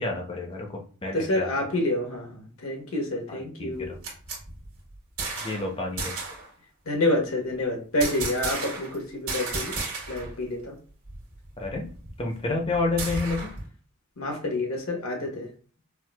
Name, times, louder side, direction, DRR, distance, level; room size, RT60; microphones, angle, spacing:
voice 1, 0.0-1.5 3.3-4.0 5.4-6.1 11.6-11.9 12.2-13.5, left 3 dB, 25° left, 2 dB, 0.6 m, -30 dB
voice 2, 1.1-3.9 6.9-9.7 10.1-10.7 14.2-15.5, left 1 dB, 70° left, 1 dB, 1.0 m, -28 dB
sound 1, 3.7-5.7 6.0-6.5 8.0-9.0 9.3-10.3 10.6-10.7 11.1-13.7, right 3 dB, 75° right, 1.3 m, -34 dB
4.5 x 2.1 x 2.2 m, 0.41 s
head